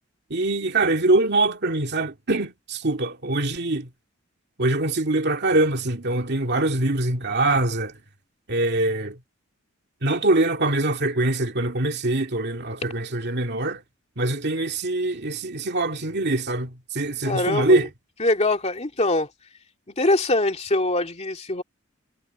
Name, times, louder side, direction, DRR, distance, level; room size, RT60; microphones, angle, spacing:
voice 1, 0.3-3.9 4.6-7.9 8.5-9.2 10.0-13.8 14.2-17.9, right 2 dB, 50° right, 2.3 m, -23 dB
voice 2, 17.2-17.8 18.2-19.3 20.0-21.6, left 2 dB, 30° left, 2.5 m, -23 dB
head